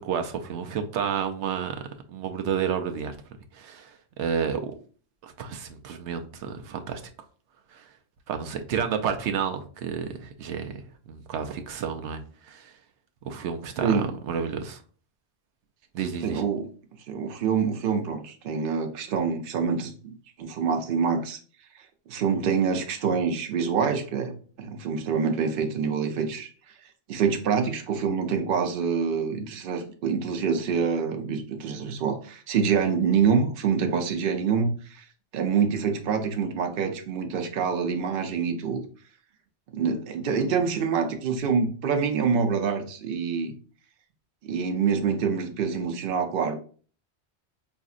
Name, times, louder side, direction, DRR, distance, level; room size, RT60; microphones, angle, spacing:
voice 1, 0.0-1.8 2.1-3.2 3.5-4.8 5.2-7.0 7.7-7.9 8.3-12.7 13.2-14.8 15.9-16.4, right 7 dB, 90° right, 0.9 m, -31 dB
voice 2, 16.2-16.7 17.1-21.4 22.1-26.5 27.1-35.0 35.3-38.8 39.7-43.5 44.4-46.5, right 6 dB, 60° right, 0.8 m, -26 dB
4.9 x 2.7 x 2.4 m
omnidirectional pair, 1.1 m